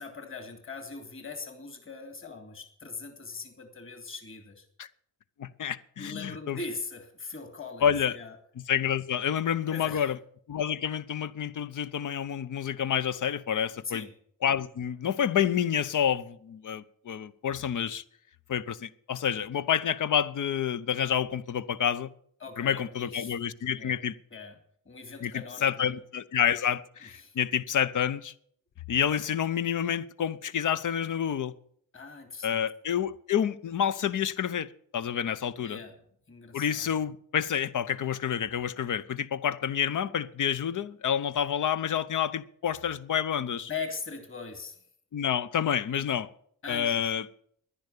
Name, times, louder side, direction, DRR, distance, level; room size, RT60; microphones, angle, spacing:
voice 1, 0.0-4.7 6.0-8.4 9.7-10.1 13.8-14.1 22.4-23.4 23.7-24.0 24.3-24.6 24.9-25.9 27.1-27.4 31.9-32.6 35.6-35.9 36.3-36.9 43.4-44.8 46.6-47.1, left 4 dB, 35° left, 2.8 m, -41 dB
voice 2, 5.4-6.6 7.8-8.1 8.7-10.2 10.5-14.1 14.4-18.0 18.5-22.1 22.6-24.1 25.2-28.3 28.9-31.5 32.4-35.8 36.5-43.7 45.1-46.3 46.7-47.2, left 8 dB, 50° left, 0.9 m, -28 dB
11.0 x 10.5 x 8.3 m
supercardioid pair, 50°, 38 cm